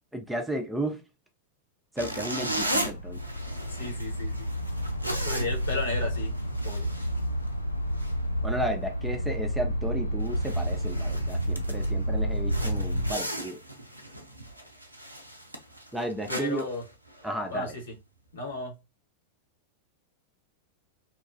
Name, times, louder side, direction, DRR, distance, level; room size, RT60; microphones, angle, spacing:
voice 1, 0.1-1.0 2.0-3.2 8.4-13.6 15.9-16.7 17.2-17.7, right 1 dB, 5° right, 0.5 m, -33 dB
sound 1, 2.0-7.7 8.0-8.2 8.7-8.9 9.3-9.4 9.9-10.0 10.2-12.0 12.5-17.5, right 1 dB, 85° right, 0.4 m, -37 dB
sound 2, 2.3-13.1, equal, 85° left, 0.4 m, -30 dB
voice 2, 3.8-4.5 5.2-6.3 6.6-6.9 16.3-16.8 17.5-17.9 18.3-18.7, left 3 dB, 70° left, 1.2 m, -34 dB
2.8 x 2.3 x 2.5 m
figure-of-eight pair, 90°, 0 cm